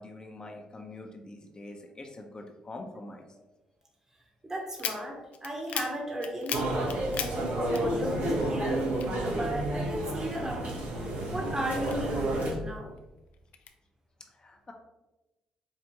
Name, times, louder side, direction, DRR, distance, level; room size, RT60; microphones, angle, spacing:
voice 1, 0.0-3.3 14.3-14.7, left 2 dB, 30° left, 2 dB, 0.6 m, -45 dB
voice 2, 4.4-8.8 9.3-10.9 11.3-12.9, right 1 dB, 20° right, 0 dB, 1.0 m, -35 dB
sound 1, 4.7-8.4 8.6-10.0 10.4-12.5 13.0-13.7, left 8 dB, 70° left, 0.4 m, -38 dB
sound 2, 6.5-12.5, right 1 dB, 65° right, 1.1 m, -31 dB
4.6 x 2.4 x 2.9 m, 1.0 s
supercardioid pair, 60°, 3 cm